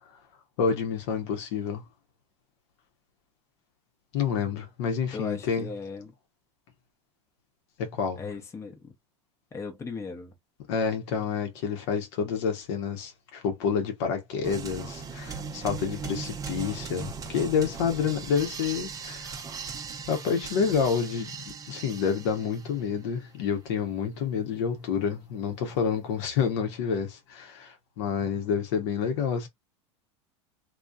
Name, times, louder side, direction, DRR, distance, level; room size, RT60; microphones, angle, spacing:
voice 1, 0.6-1.8 4.1-5.7 7.8-8.2 10.7-19.4 20.1-21.3 21.7-29.5, left 6 dB, 65° left, 0.9 m, -28 dB
voice 2, 5.1-6.1 8.2-8.9 9.5-10.3, left 4 dB, 20° left, 0.7 m, -37 dB
sound 1, 14.4-22.9, right 5 dB, 20° right, 0.6 m, -38 dB
2.6 x 2.3 x 2.2 m
supercardioid pair, 110°, 15 cm